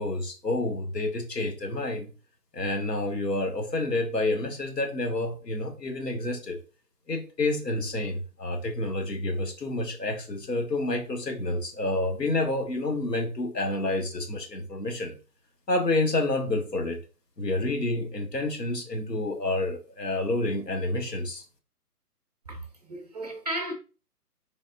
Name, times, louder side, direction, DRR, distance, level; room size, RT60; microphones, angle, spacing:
voice 1, 0.0-2.1 2.5-6.6 7.1-15.1 15.7-17.0 17.4-21.4, left 2 dB, 85° left, 1.1 m, -29 dB
voice 2, 22.5-23.7, right 1 dB, 25° right, 0.6 m, -34 dB
3.4 x 3.3 x 2.6 m
figure-of-eight pair, 140°, 48 cm